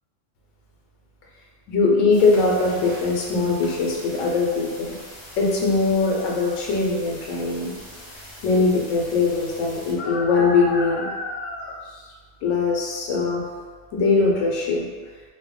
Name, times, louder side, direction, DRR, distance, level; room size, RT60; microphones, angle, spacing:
voice 1, 1.7-4.9 5.4-7.7 8.4-11.8 12.4-13.4 13.9-14.9, left 3 dB, 85° left, -1 dB, 1.0 m, -21 dB
sound 1, 2.1-9.9, left 1 dB, 35° left, 1.0 m, -42 dB
2.3 x 2.1 x 3.8 m, 1.5 s
omnidirectional pair, 1.3 m